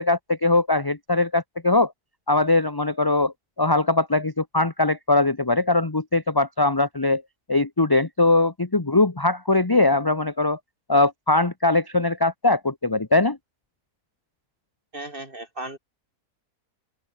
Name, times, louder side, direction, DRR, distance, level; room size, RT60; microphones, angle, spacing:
voice 1, 0.0-1.9 2.3-7.2 7.5-10.6 10.9-13.4, left 2 dB, 15° left, 1.1 m, -21 dB
voice 2, 14.9-15.8, right 1 dB, 35° right, 4.8 m, -35 dB
open air
omnidirectional pair, 1.6 m